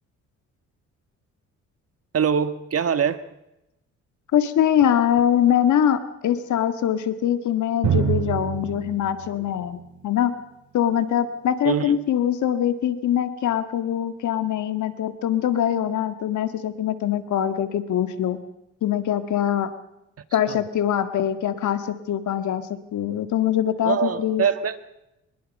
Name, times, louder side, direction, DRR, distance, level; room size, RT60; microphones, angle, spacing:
voice 1, 2.1-3.2 11.6-12.0 20.5-20.6 23.8-24.8, right 7 dB, 50° right, 11 dB, 1.7 m, -23 dB
voice 2, 4.3-9.8 10.0-10.3 10.7-18.4 18.8-19.7 20.3-22.6 22.9-24.4, left 10 dB, 75° left, 9 dB, 2.0 m, -23 dB
Drum, 7.8-11.4, right 9 dB, 70° right, 3.5 m, -28 dB
24.5 x 21.5 x 5.5 m, 0.88 s
cardioid pair, 90°, 30 cm